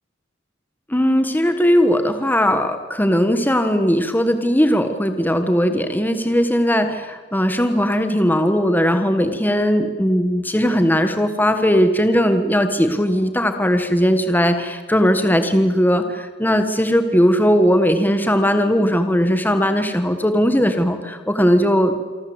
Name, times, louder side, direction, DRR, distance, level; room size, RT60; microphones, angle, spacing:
voice 1, 0.9-22.0, equal, 10° left, 7 dB, 1.3 m, -18 dB
28.0 x 24.0 x 8.0 m, 1.5 s
head